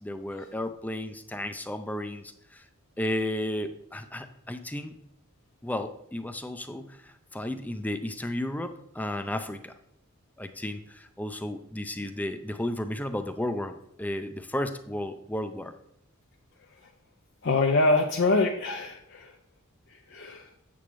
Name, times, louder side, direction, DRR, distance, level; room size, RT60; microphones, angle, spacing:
voice 1, 0.0-2.7 3.0-4.9 5.6-9.7 10.4-15.7, left 1 dB, 10° left, 9 dB, 0.4 m, -33 dB
voice 2, 17.4-19.3 19.9-20.5, left 3 dB, 55° left, 2 dB, 0.6 m, -25 dB
8.5 x 7.1 x 3.1 m, 0.76 s
head